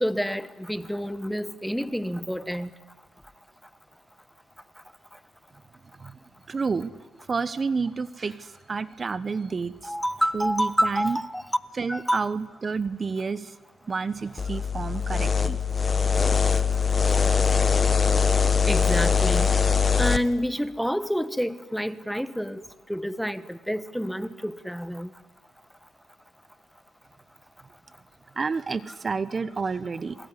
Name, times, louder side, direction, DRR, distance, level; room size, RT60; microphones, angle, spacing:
voice 1, 0.0-2.7 9.8-11.4 11.9-12.2 18.7-19.5 20.0-22.6 22.9-25.1, equal, ahead, 1.3 m, -28 dB
voice 2, 6.5-6.9 7.3-9.9 10.3-11.2 11.8-13.5 13.9-15.6 28.4-30.2, right 4 dB, 35° right, 0.9 m, -29 dB
sound 1, 14.4-20.2, left 6 dB, 35° left, 1.5 m, -22 dB
27.0 x 22.0 x 9.9 m
cardioid pair, 90°, 0 cm